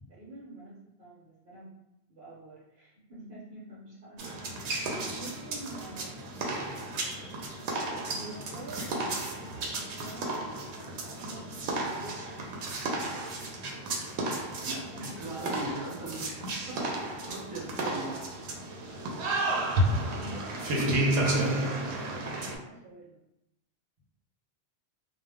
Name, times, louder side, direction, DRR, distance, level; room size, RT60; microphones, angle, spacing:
voice 1, 0.1-1.8 2.1-4.3 4.5-6.3 8.1-8.9 9.6-11.6 11.8-12.6 13.0-13.3 14.7-15.6 16.5-16.6 20.0-21.6 21.9-23.2, right 2 dB, 60° right, -9 dB, 1.0 m, -47 dB
sound 1, 4.2-22.6, right 1 dB, 85° right, 0.9 m, -32 dB
voice 2, 14.6-18.4, right 2 dB, 35° right, -6 dB, 0.8 m, -40 dB
2.1 x 2.0 x 3.4 m, 0.84 s
omnidirectional pair, 1.1 m